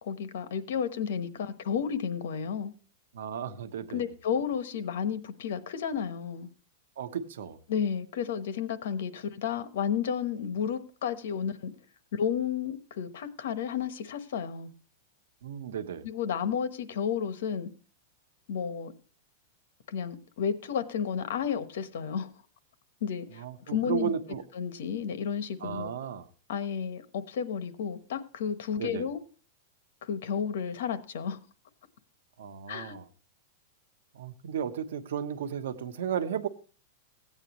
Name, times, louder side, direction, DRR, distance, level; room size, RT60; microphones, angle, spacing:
voice 1, 0.0-2.7 3.9-6.5 7.7-11.7 12.1-14.7 16.0-17.7 18.5-18.9 19.9-22.3 23.0-24.1 24.5-25.9 26.5-29.2 30.0-31.4 32.7-33.0, left 7 dB, 70° left, 1.0 m, -32 dB
voice 2, 3.1-4.1 7.0-7.6 15.4-16.0 23.3-24.4 25.6-26.3 28.8-29.1 32.4-33.1 34.1-36.5, right 8 dB, 85° right, 1.0 m, -34 dB
16.0 x 9.0 x 3.0 m
supercardioid pair, 165°, 0 cm